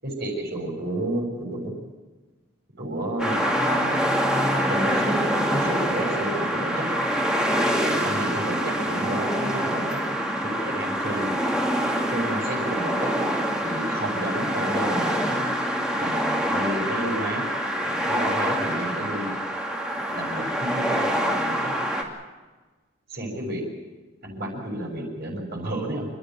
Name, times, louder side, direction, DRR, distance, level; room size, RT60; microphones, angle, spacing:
voice 1, 0.0-1.8 2.8-4.0 4.5-5.2 5.5-6.9 7.8-10.0 10.4-11.3 12.1-13.1 13.6-15.4 16.0-17.4 17.8-19.4 20.1-21.1 21.3-21.7 23.1-23.6 24.2-26.1, right 1 dB, 50° right, -1 dB, 6.9 m, -31 dB
sound 1, 3.2-22.0, equal, 5° right, 2.7 m, -25 dB
28.5 x 12.5 x 9.1 m, 1.3 s
head